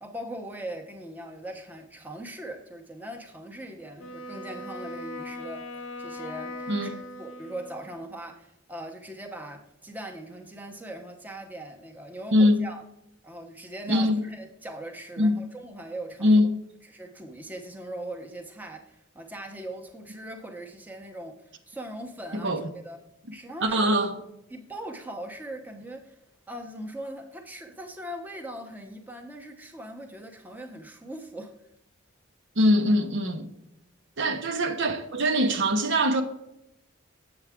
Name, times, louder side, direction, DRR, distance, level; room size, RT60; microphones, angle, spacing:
voice 1, 0.0-5.7 6.0-12.8 13.2-16.4 16.8-23.0 23.3-23.9 24.5-26.2 26.5-31.5 34.3-34.4, right 1 dB, 10° right, 0.9 m, -40 dB
Wind instrument woodwind instrument, 4.0-8.1, left 2 dB, 65° left, 0.8 m, -39 dB
voice 2, 12.3-12.6 13.9-14.2 15.2-15.4 16.2-16.5 22.4-22.6 23.6-24.2 32.6-33.5 34.2-36.2, equal, 60° right, 0.9 m, -22 dB
8.1 x 7.1 x 3.6 m
head